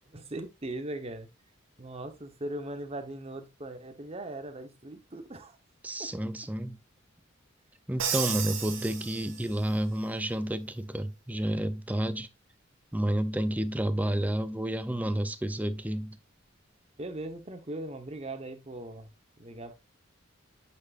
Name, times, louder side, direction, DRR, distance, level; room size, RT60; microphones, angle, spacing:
voice 1, 0.1-1.3 1.8-5.6 6.0-6.1 8.5-8.9 17.0-19.1 19.4-19.7, right 1 dB, 30° right, 1.0 m, -39 dB
voice 2, 5.8-6.8 7.9-12.3 12.9-16.2, right 1 dB, 10° right, 0.5 m, -30 dB
Crash cymbal, 8.0-9.7, right 8 dB, 65° right, 1.5 m, -33 dB
8.3 x 6.3 x 2.4 m
head